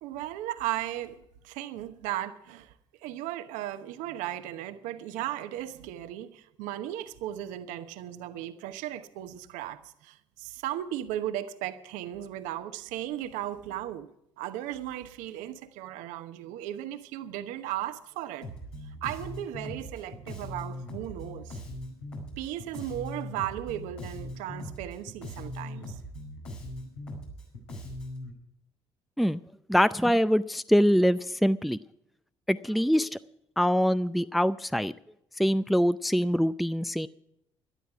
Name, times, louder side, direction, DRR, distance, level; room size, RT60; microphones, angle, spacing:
voice 1, 0.0-2.7 3.0-14.1 14.4-18.5 18.8-21.6 22.4-26.0, right 12 dB, 70° right, 1.0 m, -36 dB
Bass guitar, 18.4-28.3, left 1 dB, 80° left, 5.4 m, -40 dB
voice 2, 29.7-31.8 32.5-33.1 33.6-34.9 35.4-37.1, equal, ahead, 0.5 m, -24 dB
18.5 x 12.5 x 4.8 m
hypercardioid pair, 50°, 14 cm